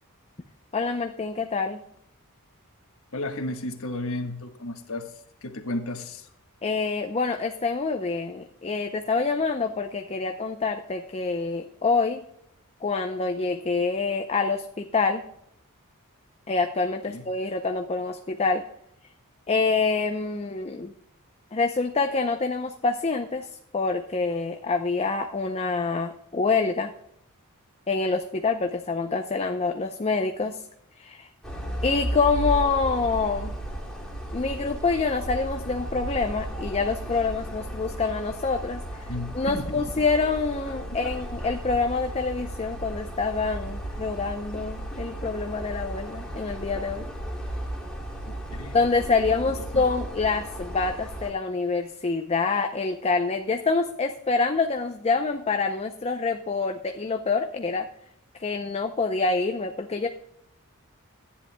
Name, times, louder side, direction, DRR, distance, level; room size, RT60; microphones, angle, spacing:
voice 1, 0.7-1.8 6.6-12.2 12.8-15.2 16.5-18.6 19.5-20.9 21.5-26.9 27.9-30.6 31.0-31.3 31.8-33.5 34.3-39.1 39.3-47.1 48.7-57.9 58.3-60.1, left 4 dB, 30° left, 5 dB, 0.5 m, -26 dB
voice 2, 3.1-6.3 17.1-17.3 39.1-40.1 48.2-48.8 49.7-49.8, left 2 dB, 65° left, 5 dB, 1.3 m, -34 dB
sound 1, 31.4-51.3, right 1 dB, ahead, 2.3 m, -34 dB
14.5 x 10.0 x 2.2 m, 0.76 s
head